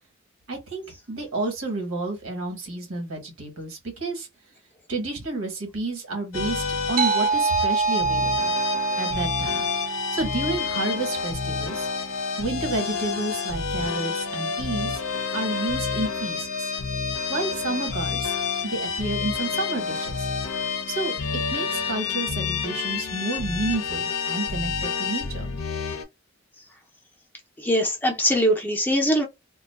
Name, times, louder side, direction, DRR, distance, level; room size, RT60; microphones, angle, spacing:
voice 1, 0.5-4.3 4.9-8.5 9.0-9.7 9.9-11.9 12.4-15.0 15.3-16.7 17.3-18.3 18.6-20.3 20.9-21.1 21.5-25.5, right 2 dB, 85° right, 1.2 m, -30 dB
sound 1, 6.3-26.0, left 5 dB, 80° left, 0.6 m, -29 dB
sound 2, 7.0-11.9, right 5 dB, 40° right, 0.3 m, -27 dB
voice 2, 27.6-29.2, equal, 10° left, 0.5 m, -22 dB
2.4 x 2.2 x 2.3 m
head